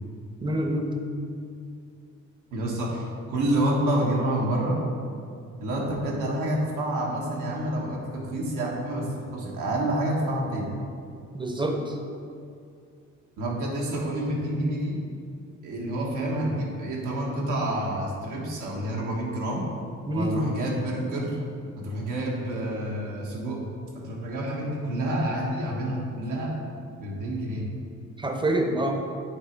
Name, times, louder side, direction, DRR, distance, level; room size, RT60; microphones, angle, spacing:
voice 1, 0.4-1.0 11.3-11.8 20.1-20.5 28.2-29.0, right 1 dB, 15° right, 3 dB, 0.7 m, -26 dB
voice 2, 2.5-4.8 5.6-10.7 13.4-15.0 15.6-19.7 20.1-21.4 21.8-23.6 23.9-26.6 27.0-27.6, right 1 dB, 80° right, -3 dB, 1.4 m, -28 dB
8.1 x 3.1 x 4.5 m, 2.4 s
cardioid pair, 90°, 30 cm